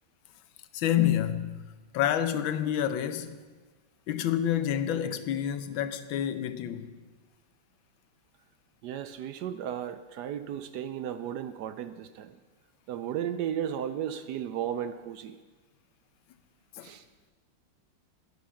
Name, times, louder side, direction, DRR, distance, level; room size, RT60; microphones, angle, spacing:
voice 1, 0.7-1.6 1.9-3.3 4.1-6.9 16.8-16.9, left 10 dB, 90° left, 1.5 m, -28 dB
voice 2, 8.8-12.4 12.9-15.4 16.8-17.0, right 9 dB, 75° right, 1.0 m, -34 dB
11.0 x 10.5 x 5.7 m
omnidirectional pair, 2.1 m